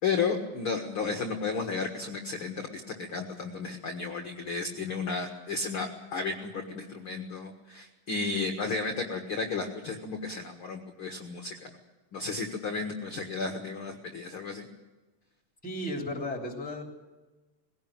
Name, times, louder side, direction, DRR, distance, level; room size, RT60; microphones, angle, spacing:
voice 1, 0.0-11.8 12.1-14.7, left 4 dB, 45° left, 3 dB, 2.0 m, -33 dB
voice 2, 15.6-16.8, left 1 dB, 5° left, 2 dB, 2.8 m, -34 dB
21.0 x 17.5 x 8.9 m, 1.2 s
omnidirectional pair, 4.0 m